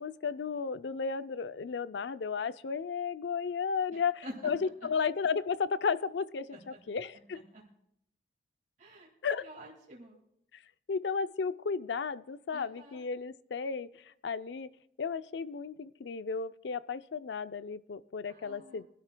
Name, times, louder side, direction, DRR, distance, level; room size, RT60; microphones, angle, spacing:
voice 1, 0.0-7.4 9.2-9.5 10.9-14.7 15.0-18.9, left 5 dB, 80° left, 15 dB, 0.5 m, -34 dB
voice 2, 3.9-4.5 4.8-4.9 6.5-6.8 7.3-7.6 8.8-9.1 9.4-10.2 12.5-13.0 18.3-18.9, equal, 50° right, -4 dB, 2.0 m, -48 dB
23.0 x 11.5 x 2.2 m, 0.75 s
head